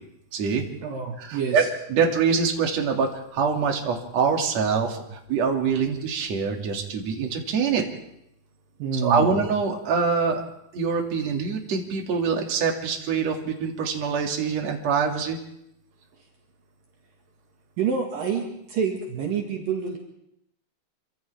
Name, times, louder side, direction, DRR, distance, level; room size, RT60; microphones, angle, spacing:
voice 1, 0.3-0.6 1.2-1.6 1.9-7.8 9.0-10.4 10.7-15.4, right 5 dB, 45° right, 1 dB, 3.4 m, -24 dB
voice 2, 0.8-1.7 8.8-9.3 17.8-20.0, right 6 dB, 65° right, 1 dB, 3.4 m, -27 dB
29.0 x 25.5 x 3.6 m, 0.79 s
omnidirectional pair, 4.5 m